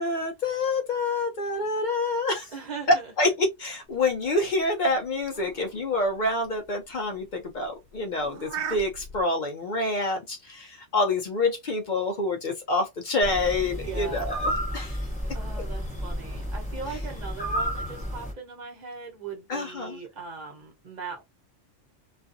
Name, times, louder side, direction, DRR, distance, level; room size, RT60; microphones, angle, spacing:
voice 1, 0.0-2.5 3.2-15.0 19.5-20.0, left 2 dB, 60° left, 0.5 m, -27 dB
voice 2, 2.5-3.1 13.7-14.3 15.3-21.2, right 4 dB, 40° right, 1.0 m, -39 dB
sound 1, 3.9-9.2, right 7 dB, 60° right, 0.7 m, -41 dB
sound 2, 13.2-18.3, equal, 5° left, 0.9 m, -31 dB
2.4 x 2.4 x 2.5 m
omnidirectional pair, 1.3 m